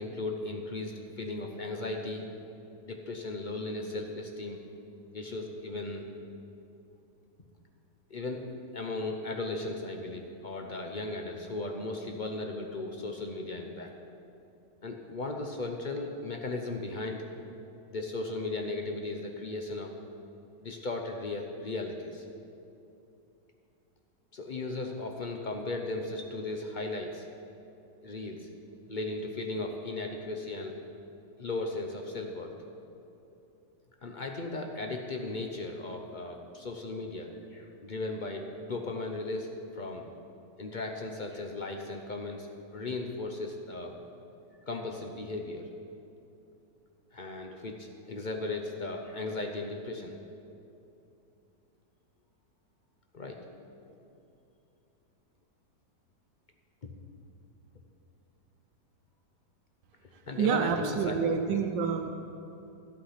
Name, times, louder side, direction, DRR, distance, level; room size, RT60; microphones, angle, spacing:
voice 1, 0.0-2.3 2.8-4.6 5.1-6.1 8.1-8.4 8.7-13.9 14.8-17.3 17.9-19.9 20.6-22.2 24.3-27.3 28.0-28.5 28.9-30.7 31.4-32.5 34.0-39.5 39.7-40.1 40.6-43.9 44.7-45.7 47.1-50.2 53.1-54.0 56.8-56.9 60.0-61.6, left 2 dB, 55° left, 3 dB, 0.5 m, -36 dB
voice 2, 60.1-62.1, right 7 dB, 85° right, 5 dB, 1.3 m, -28 dB
13.0 x 8.6 x 5.7 m, 2.8 s
omnidirectional pair, 1.9 m